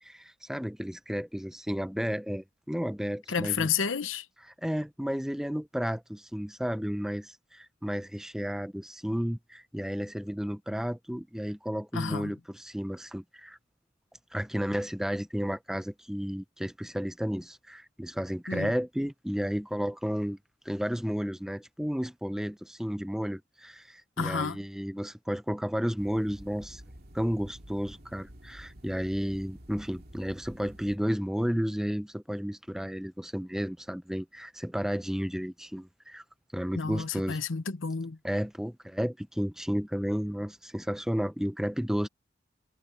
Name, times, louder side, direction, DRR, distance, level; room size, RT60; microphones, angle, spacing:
voice 1, 0.0-3.7 4.4-13.6 14.3-20.4 20.7-26.8 27.1-36.2 36.5-37.4 38.2-42.1, equal, 5° right, 0.6 m, -32 dB
voice 2, 3.3-4.3 11.9-12.3 18.5-18.7 24.2-24.6 36.8-38.2, left 5 dB, 85° left, 0.9 m, -31 dB
sound 1, 26.0-31.0, equal, 50° right, 2.6 m, -50 dB
head